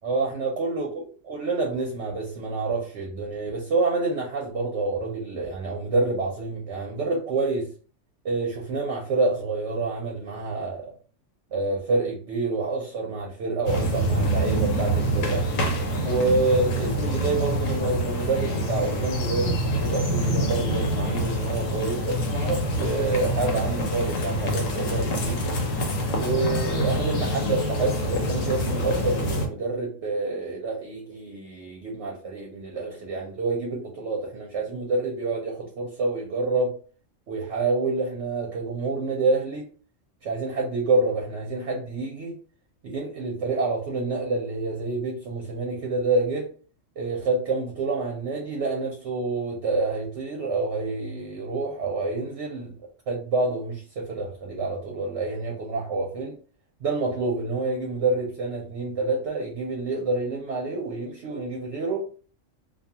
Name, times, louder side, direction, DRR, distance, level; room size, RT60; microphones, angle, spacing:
voice 1, 0.0-7.7 8.2-10.9 11.5-15.5 16.0-25.4 26.2-36.7 37.3-39.7 40.2-42.3 42.8-46.5 47.0-52.7 53.1-56.4 56.8-62.1, right 3 dB, 65° right, 0.8 m, -28 dB
sound 1, 13.7-29.5, equal, 85° left, 1.1 m, -26 dB
2.4 x 2.3 x 2.7 m
omnidirectional pair, 1.3 m